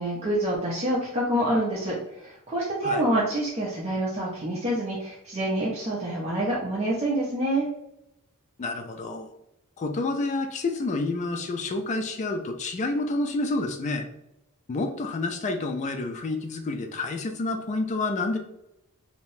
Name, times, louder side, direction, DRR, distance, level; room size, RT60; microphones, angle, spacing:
voice 1, 0.0-7.7, right 1 dB, 30° right, -6 dB, 0.5 m, -27 dB
voice 2, 8.6-9.3 9.8-14.1 14.7-18.4, left 2 dB, 35° left, 5 dB, 0.3 m, -29 dB
2.7 x 2.1 x 3.1 m, 0.83 s
head